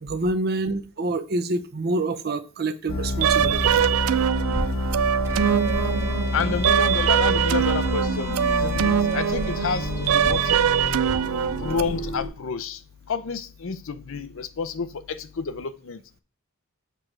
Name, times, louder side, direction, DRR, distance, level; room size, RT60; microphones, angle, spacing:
voice 1, 0.0-3.7, right 2 dB, 50° right, 0.7 m, -27 dB
sound 1, 2.9-12.3, left 2 dB, 80° left, 1.4 m, -28 dB
sound 2, 3.2-11.8, right 9 dB, 80° right, 0.4 m, -23 dB
Bowed string instrument, 5.2-11.0, right 3 dB, 15° right, 0.9 m, -41 dB
voice 2, 6.3-10.6 11.6-12.8 13.1-16.2, left 5 dB, 65° left, 0.6 m, -30 dB
6.8 x 6.0 x 3.2 m
head